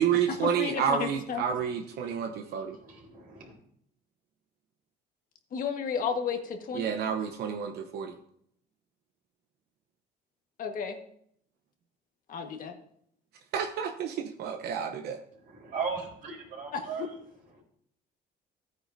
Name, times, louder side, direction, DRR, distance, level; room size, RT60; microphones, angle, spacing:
voice 1, 0.0-2.8 6.7-8.1 13.5-15.2, right 8 dB, 75° right, 0.9 m, -30 dB
voice 2, 0.6-1.4 5.5-6.9 10.6-11.0 12.3-12.7 16.7-16.8, left 6 dB, 55° left, 1.5 m, -32 dB
voice 3, 2.2-3.5 15.3-17.2 17.5-17.6, right 5 dB, 55° right, 3.9 m, -38 dB
14.5 x 9.3 x 2.7 m
cardioid pair, 110°, 17 cm